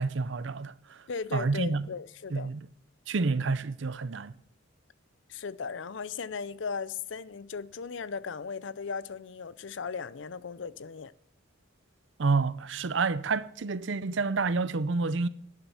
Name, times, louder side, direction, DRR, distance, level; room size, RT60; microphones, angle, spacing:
voice 1, 0.0-1.9 2.3-2.6 3.1-4.3 12.2-15.3, right 4 dB, 65° right, 0.6 m, -29 dB
voice 2, 1.1-2.5 5.3-11.1, left 5 dB, 65° left, 0.5 m, -37 dB
11.5 x 9.2 x 7.1 m
head